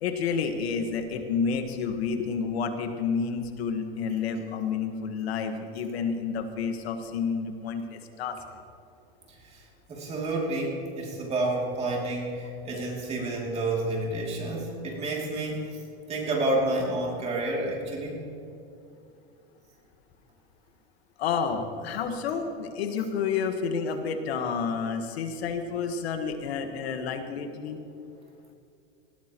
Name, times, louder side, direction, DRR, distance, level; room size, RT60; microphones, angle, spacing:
voice 1, 0.0-8.4 21.2-27.8, left 6 dB, 90° left, 6 dB, 1.5 m, -30 dB
voice 2, 9.3-15.8 16.1-18.2, right 2 dB, 20° right, -2 dB, 2.7 m, -30 dB
19.0 x 15.5 x 3.0 m, 2.6 s
supercardioid pair, 160°, 31 cm